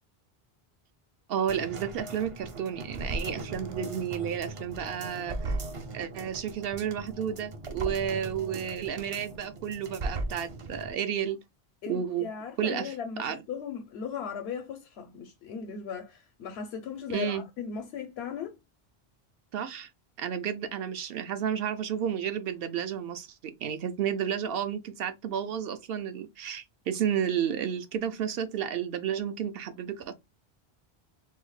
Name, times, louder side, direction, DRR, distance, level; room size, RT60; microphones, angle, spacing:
voice 1, 1.3-5.5 5.9-11.4 11.9-12.3 12.6-13.4 17.1-17.4 19.5-19.9 20.2-30.1, right 8 dB, 70° right, 0.8 m, -32 dB
sound 1, 1.5-10.9 11.3-11.4, right 2 dB, 45° right, 0.4 m, -38 dB
voice 2, 11.8-18.6, left 7 dB, 85° left, 0.8 m, -37 dB
3.6 x 2.1 x 3.1 m
omnidirectional pair, 1.0 m